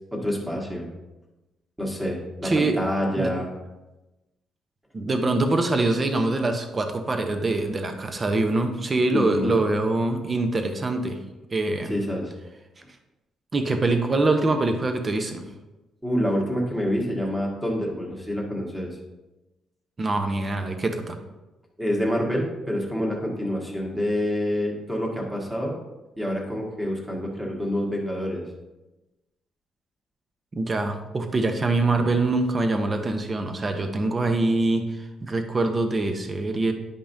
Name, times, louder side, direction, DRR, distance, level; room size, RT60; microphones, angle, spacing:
voice 1, 0.1-0.9 1.8-3.5 9.1-9.5 11.9-12.3 16.0-18.9 21.8-25.8 26.2-28.4, equal, 5° right, -2 dB, 1.6 m, -27 dB
voice 2, 2.4-2.8 3.2-3.3 4.9-11.2 11.5-11.9 13.5-15.4 20.0-21.2 30.6-36.7, right 2 dB, 25° right, 6 dB, 0.8 m, -24 dB
10.0 x 5.3 x 2.7 m, 1.0 s
cardioid pair, 135°, 0 cm